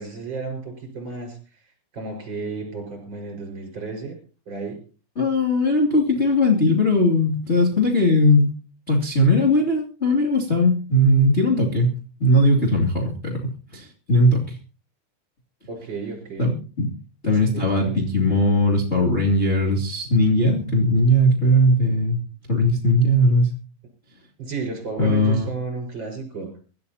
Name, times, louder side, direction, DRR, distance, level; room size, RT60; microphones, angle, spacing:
voice 1, 0.0-1.6 1.9-4.2 4.5-4.8 15.7-16.5 17.3-18.1 24.4-26.5, right 4 dB, 25° right, 3 dB, 5.3 m, -33 dB
voice 2, 5.1-8.5 8.9-11.9 12.2-14.6 16.4-16.5 16.8-16.9 17.2-22.2 22.5-23.5 25.0-25.5, left 1 dB, 25° left, -3 dB, 1.4 m, -19 dB
25.0 x 13.5 x 2.8 m, 0.38 s
omnidirectional pair, 5.7 m